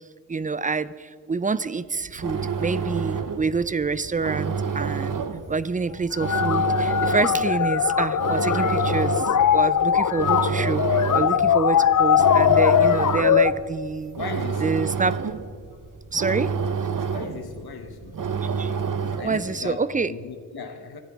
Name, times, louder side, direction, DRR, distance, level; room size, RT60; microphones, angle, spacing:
voice 1, 0.3-14.2 14.6-15.2 16.1-16.5 18.4-18.7 19.2-20.1, right 4 dB, 20° right, 0.4 m, -27 dB
sound 1, 2.0-19.5, right 6 dB, 60° right, 0.9 m, -29 dB
sound 2, 6.2-13.5, left 9 dB, 55° left, 0.5 m, -20 dB
voice 2, 14.1-14.9 15.7-15.8 17.1-18.2 19.0-21.0, left 5 dB, 90° left, 1.0 m, -37 dB
24.0 x 14.5 x 3.6 m
wide cardioid pair, 110°, 36 cm